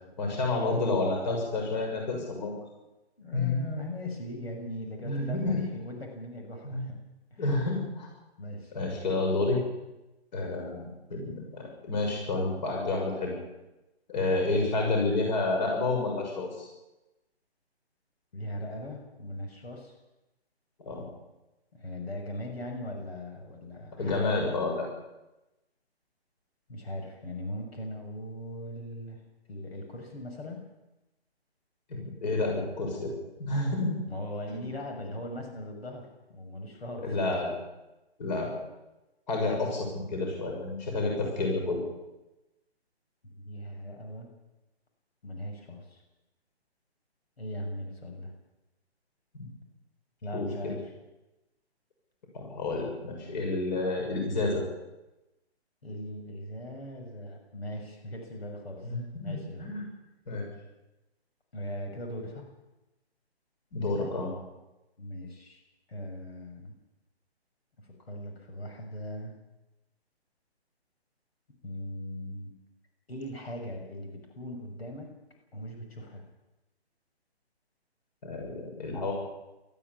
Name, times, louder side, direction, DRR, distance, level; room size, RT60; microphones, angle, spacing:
voice 1, 0.2-2.5 3.3-3.6 5.0-5.6 6.6-6.9 7.4-8.1 8.7-9.6 10.3-13.3 14.1-16.7 20.8-21.0 23.9-24.9 31.9-33.1 33.4-34.0 34.5-34.7 37.0-37.5 38.2-38.6 39.3-41.8 49.3-49.5 50.3-50.7 52.3-54.6 58.8-59.3 59.6-59.8 60.3-60.5 63.7-64.3 78.2-79.1, left 2 dB, 40° left, 1 dB, 6.9 m, -29 dB
voice 2, 3.2-7.0 7.3-7.6 8.4-8.7 18.3-19.9 21.8-24.3 26.7-30.6 34.1-37.2 43.4-44.3 45.2-46.0 47.4-48.3 50.2-50.9 55.8-58.9 59.2-59.7 61.5-62.5 65.0-65.6 65.9-66.7 68.1-69.4 71.6-72.5 73.1-75.1 75.5-76.2, left 1 dB, 65° left, 3 dB, 7.0 m, -39 dB
19.0 x 14.5 x 9.8 m, 1.0 s
hypercardioid pair, 155°, 33 cm